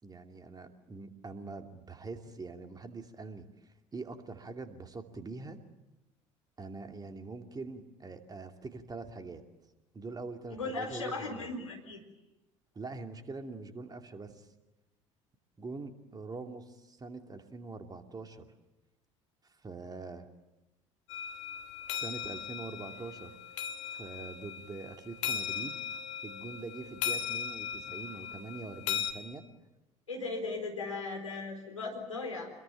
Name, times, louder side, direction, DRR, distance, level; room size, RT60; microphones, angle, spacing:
voice 1, 0.0-3.5 3.9-5.6 6.6-9.4 9.9-11.5 12.7-14.5 15.6-18.5 19.6-20.3 22.0-23.4 23.9-25.8 26.2-29.4, right 3 dB, 25° right, 6 dB, 2.7 m, -44 dB
voice 2, 10.5-12.0 30.1-32.5, left 3 dB, 85° left, 1 dB, 4.3 m, -37 dB
sound 1, 21.1-29.1, left 8 dB, 65° left, 1.9 m, -38 dB
26.0 x 22.0 x 9.2 m, 0.99 s
figure-of-eight pair, 60°, 16 cm